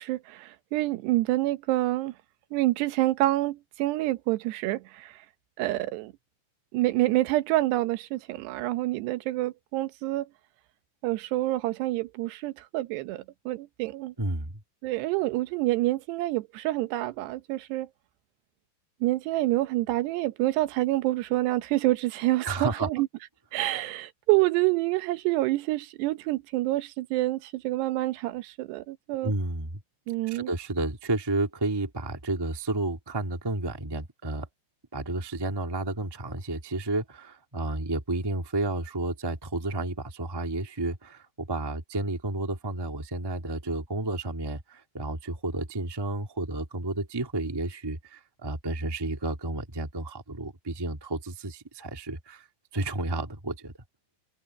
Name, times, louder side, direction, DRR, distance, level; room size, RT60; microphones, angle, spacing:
voice 1, 0.0-2.1 2.5-5.2 5.6-6.1 6.7-10.3 11.0-14.1 14.8-17.9 19.0-23.1 23.5-29.3 30.1-30.5, right 17 dB, 85° right, 3.1 m, -27 dB
voice 2, 14.2-14.5 22.4-22.9 29.2-29.8 30.3-34.5 34.9-52.5 52.7-53.7, right 2 dB, 25° right, 0.5 m, -31 dB
omnidirectional pair, 4.8 m